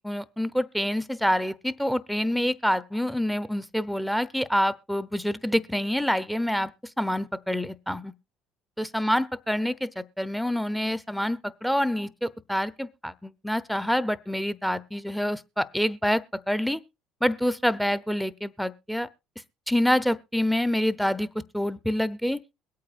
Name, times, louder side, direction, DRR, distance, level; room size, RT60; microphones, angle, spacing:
voice 1, 0.0-6.7 7.0-8.1 8.8-16.8 17.2-19.1 19.7-22.4, equal, ahead, 0.9 m, -27 dB
22.0 x 8.6 x 2.6 m
hypercardioid pair, 65°, 0 cm